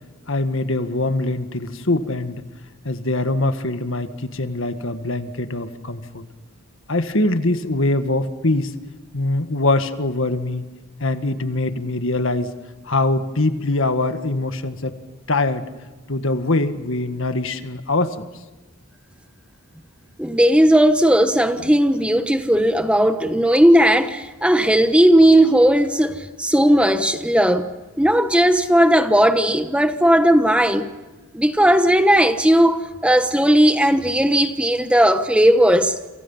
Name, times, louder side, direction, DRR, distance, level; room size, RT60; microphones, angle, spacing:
voice 1, 0.3-2.4 2.9-6.2 6.9-8.7 9.1-10.7 11.0-12.5 12.8-15.0 15.3-15.7 16.1-18.2, left 2 dB, 60° left, 1.7 m, -23 dB
voice 2, 20.2-27.7 28.0-30.9 31.3-36.0, right 1 dB, 5° right, 1.1 m, -16 dB
29.5 x 27.5 x 5.7 m
head